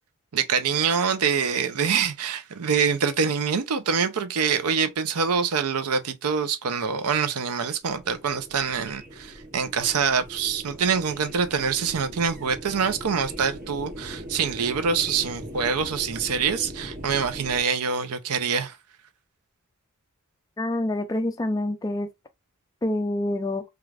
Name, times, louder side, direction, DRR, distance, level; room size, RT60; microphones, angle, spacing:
voice 1, 0.3-18.8, right 6 dB, 85° right, 0.5 m, -25 dB
sound 1, 7.8-17.6, equal, 40° right, 0.9 m, -40 dB
voice 2, 20.6-22.1 22.8-23.6, left 1 dB, 15° left, 0.3 m, -26 dB
3.2 x 2.4 x 2.4 m
head